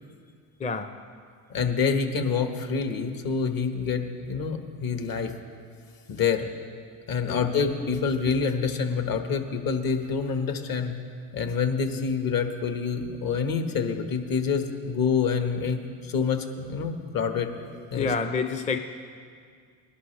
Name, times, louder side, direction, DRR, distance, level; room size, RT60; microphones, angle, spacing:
voice 1, 0.6-1.0 7.3-7.5 17.9-18.8, left 5 dB, 15° left, 7 dB, 0.5 m, -28 dB
voice 2, 1.5-5.3 6.1-6.5 7.1-10.9 11.3-18.1, left 5 dB, 50° left, 6 dB, 1.5 m, -27 dB
19.5 x 11.5 x 3.3 m, 2.2 s
supercardioid pair, 80°, 45 cm